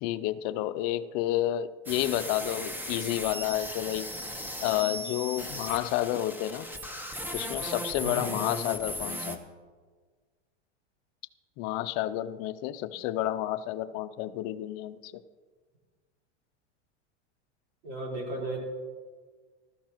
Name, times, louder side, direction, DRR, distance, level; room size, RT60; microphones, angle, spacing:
voice 1, 0.0-4.1 4.6-6.7 7.3-9.4 11.6-15.1, left 13 dB, 50° left, 14 dB, 0.6 m, -30 dB
sound 1, 1.9-9.4, equal, 5° right, 1.1 m, -37 dB
voice 2, 8.0-8.4 17.8-18.6, right 2 dB, 55° right, -2 dB, 4.3 m, -35 dB
14.5 x 13.0 x 3.0 m, 1.5 s
hypercardioid pair, 105°, 35 cm